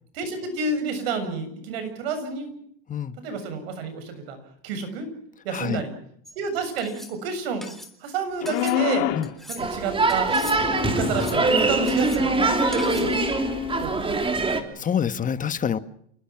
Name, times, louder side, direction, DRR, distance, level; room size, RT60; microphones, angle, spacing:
voice 1, 0.1-2.6 3.2-4.4 4.6-5.1 5.4-5.9 6.4-7.6 8.0-9.1 9.5-10.3 10.9-13.1 13.8-14.2, right 4 dB, 90° right, 9 dB, 7.2 m, -30 dB
voice 2, 5.5-5.8 9.1-9.3 14.7-15.8, left 8 dB, 25° left, 12 dB, 1.5 m, -26 dB
sound 1, 6.3-6.4 6.8-7.1 7.6-7.9 8.5-8.8 9.2-9.6 10.1-10.6 11.0-11.5 11.9-12.2 12.7-13.1, left 1 dB, ahead, 3.5 m, -40 dB
sound 2, 8.4-9.3 10.3-13.9, left 11 dB, 85° left, 2.7 m, -29 dB
sound 3, 9.6-14.6, right 3 dB, 20° right, 3.0 m, -23 dB
28.5 x 20.0 x 6.1 m, 0.65 s
supercardioid pair, 125°, 29 cm